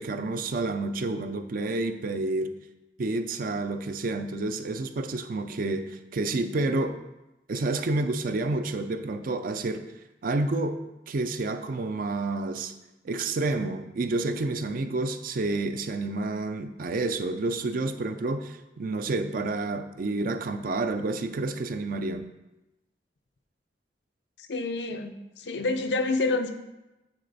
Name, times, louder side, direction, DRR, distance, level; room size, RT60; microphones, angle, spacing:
voice 1, 0.0-2.5 3.0-7.0 7.5-9.9 10.2-10.8 11.1-12.7 13.0-22.3, right 2 dB, 55° right, 9 dB, 0.4 m, -29 dB
voice 2, 24.5-26.5, left 3 dB, 70° left, 6 dB, 0.6 m, -28 dB
9.7 x 3.3 x 4.0 m, 0.98 s
head